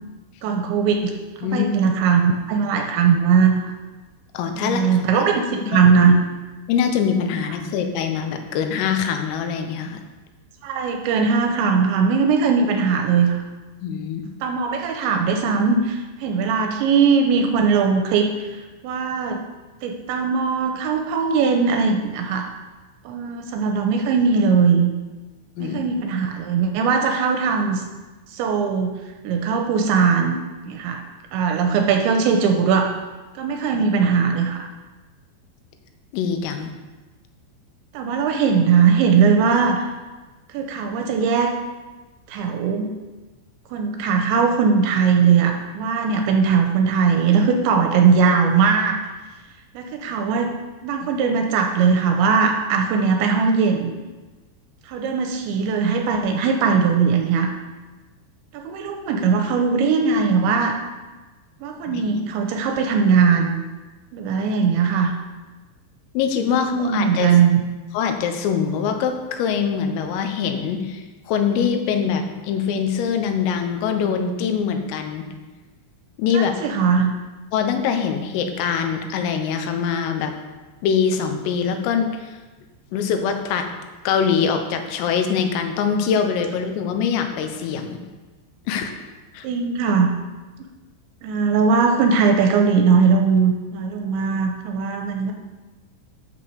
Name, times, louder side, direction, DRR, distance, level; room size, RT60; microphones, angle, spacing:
voice 1, 0.4-1.1 1.4-3.8 4.6-6.2 10.6-13.4 14.4-19.4 19.8-22.5 23.1-24.9 25.6-27.8 28.3-28.9 29.2-30.4 30.6-31.0 31.3-32.9 33.4-34.7 37.9-39.9 40.5-41.5 42.3-42.9 43.7-49.0 49.7-50.5 50.8-53.9 54.9-57.5 58.5-60.8 61.6-63.6 64.1-65.1 66.6-67.6 76.3-77.1 89.4-90.1 91.2-95.3, right 5 dB, 80° right, 4 dB, 2.8 m, -19 dB
voice 2, 1.4-1.7 4.4-5.0 5.6-5.8 6.7-10.0 13.8-14.2 25.6-25.8 33.8-33.9 36.1-36.7 61.9-62.1 66.2-67.3 67.9-75.3 76.2-76.6 77.5-80.3 80.8-82.4 82.9-83.7 84.1-88.0 88.7-89.0 89.4-89.5, left 7 dB, 85° left, 6 dB, 3.7 m, -23 dB
12.0 x 6.1 x 6.7 m, 1.2 s
omnidirectional pair, 5.8 m